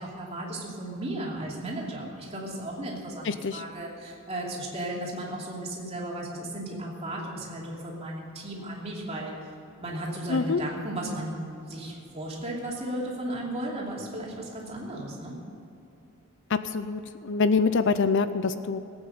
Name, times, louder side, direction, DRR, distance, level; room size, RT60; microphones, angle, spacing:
voice 1, 0.0-9.4 9.8-11.3 11.7-15.4, right 1 dB, 30° right, -3 dB, 2.8 m, -35 dB
voice 2, 3.2-3.6 10.3-10.6 16.5-18.8, left 4 dB, 55° left, 12 dB, 0.6 m, -25 dB
18.5 x 8.9 x 7.0 m, 2.9 s
head